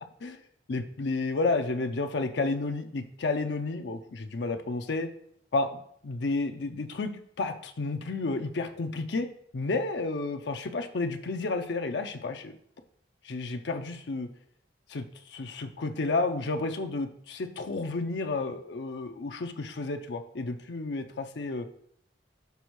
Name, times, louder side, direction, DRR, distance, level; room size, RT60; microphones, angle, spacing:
voice 1, 0.7-5.1 5.5-9.3 9.5-12.6 13.2-14.3 14.9-21.8, left 3 dB, 80° left, 6 dB, 0.6 m, -31 dB
6.9 x 4.3 x 4.6 m, 0.66 s
head